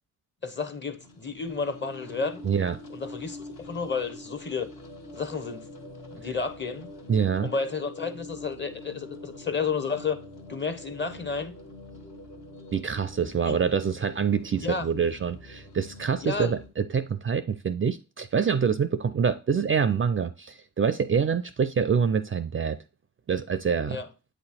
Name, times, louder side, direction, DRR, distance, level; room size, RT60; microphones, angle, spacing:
voice 1, 0.4-2.4 2.9-4.7 5.1-5.7 6.1-6.9 7.4-10.2 10.5-11.5 13.4-13.5 14.6-14.9 16.2-16.6 23.9-24.1, left 4 dB, 30° left, 0.9 m, -31 dB
sound 1, 0.7-16.7, left 1 dB, 60° left, 1.2 m, -45 dB
voice 2, 2.4-2.8 7.1-7.5 12.7-22.8 23.3-24.0, right 6 dB, 35° right, 0.4 m, -26 dB
8.1 x 3.0 x 4.2 m
cardioid pair, 60°, 38 cm